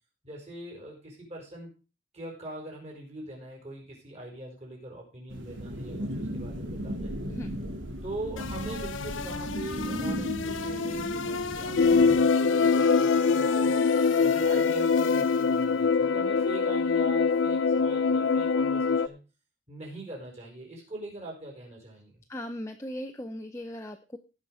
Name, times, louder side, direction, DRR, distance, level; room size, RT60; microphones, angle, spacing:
voice 1, 0.2-1.7 2.1-7.1 8.0-13.8 14.2-19.2 19.7-22.2, right 1 dB, 35° right, 0 dB, 5.1 m, -42 dB
sound 1, 5.3-12.2, equal, 75° right, 2.4 m, -36 dB
sound 2, 8.4-15.8, left 4 dB, 80° left, 0.9 m, -36 dB
sound 3, 11.8-19.1, left 5 dB, 65° left, 0.5 m, -23 dB
voice 2, 22.3-24.2, left 1 dB, 15° left, 5 dB, 0.7 m, -38 dB
17.5 x 5.9 x 4.8 m, 0.34 s
head